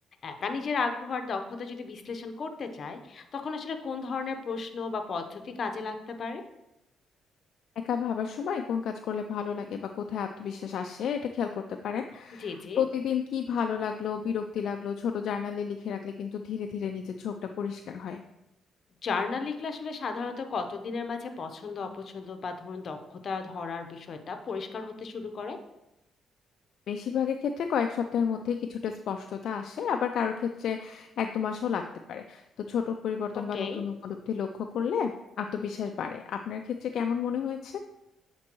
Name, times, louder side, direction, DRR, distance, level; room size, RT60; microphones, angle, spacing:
voice 1, 0.2-6.4 12.4-12.8 19.0-23.0 23.2-25.6 33.3-33.8, left 4 dB, 50° left, 7 dB, 0.7 m, -34 dB
voice 2, 7.8-18.2 26.9-31.8 32.1-35.1 35.4-37.8, left 7 dB, 70° left, 5 dB, 0.3 m, -31 dB
7.3 x 4.4 x 3.0 m, 0.91 s
cardioid pair, 90°, 0 cm